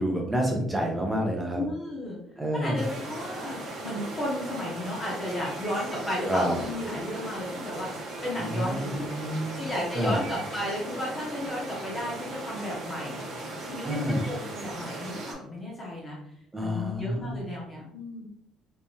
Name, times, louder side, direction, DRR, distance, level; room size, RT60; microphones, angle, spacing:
voice 1, 0.0-1.6 2.4-2.8 6.2-6.5 8.4-9.6 9.9-10.2 13.8-14.2 16.5-17.4, equal, 10° right, 0 dB, 0.8 m, -28 dB
voice 2, 1.5-2.2 2.5-7.9 8.2-9.1 9.5-13.3 13.6-16.2 16.6-18.3, left 1 dB, 20° left, -4 dB, 0.9 m, -34 dB
sound 1, 2.7-15.3, right 2 dB, 50° right, 1.1 m, -38 dB
3.4 x 3.3 x 2.8 m, 0.74 s
cardioid pair, 170°, 0 cm